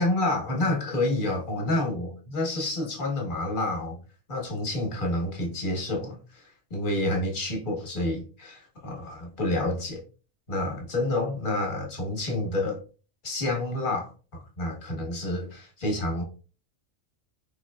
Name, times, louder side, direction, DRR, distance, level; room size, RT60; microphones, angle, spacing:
voice 1, 0.0-4.0 4.3-10.0 10.5-12.8 13.2-16.2, left 2 dB, 45° left, 1.2 m, -29 dB
4.3 x 3.1 x 2.3 m
omnidirectional pair, 1.2 m